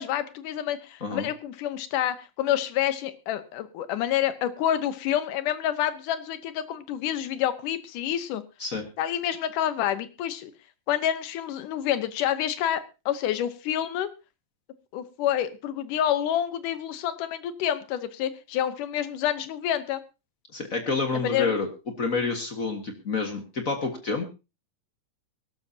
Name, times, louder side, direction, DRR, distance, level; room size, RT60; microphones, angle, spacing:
voice 1, 0.0-8.4 9.0-10.5 10.9-14.1 14.9-20.0 21.1-21.5, left 11 dB, 75° left, 12 dB, 2.4 m, -28 dB
voice 2, 20.5-21.7 22.0-24.2, left 4 dB, 50° left, 5 dB, 1.0 m, -28 dB
22.5 x 12.0 x 2.8 m, 0.28 s
omnidirectional pair, 4.0 m